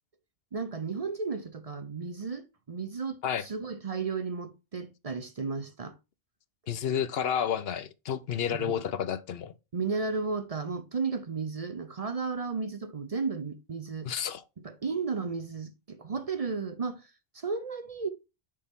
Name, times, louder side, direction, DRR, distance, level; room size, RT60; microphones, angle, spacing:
voice 1, 0.5-6.0 8.5-8.8 9.7-14.1 14.6-18.1, right 4 dB, 40° right, 0.6 m, -34 dB
voice 2, 6.7-9.5 14.0-14.4, left 8 dB, 75° left, 0.9 m, -30 dB
6.5 x 5.4 x 3.6 m
omnidirectional pair, 1.0 m